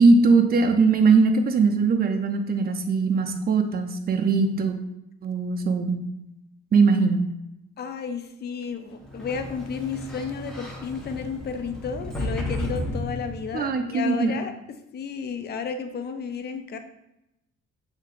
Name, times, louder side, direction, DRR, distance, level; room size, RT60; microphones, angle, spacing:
voice 1, 0.0-4.7 5.2-6.0 6.7-7.3 13.5-14.4, right 4 dB, 30° right, 4 dB, 0.6 m, -20 dB
voice 2, 7.8-14.5 14.9-16.8, left 6 dB, 35° left, 8 dB, 0.5 m, -32 dB
Sliding door, 9.0-13.7, left 1 dB, ahead, 1.1 m, -33 dB
6.4 x 2.8 x 2.5 m, 0.85 s
cardioid pair, 90°, 30 cm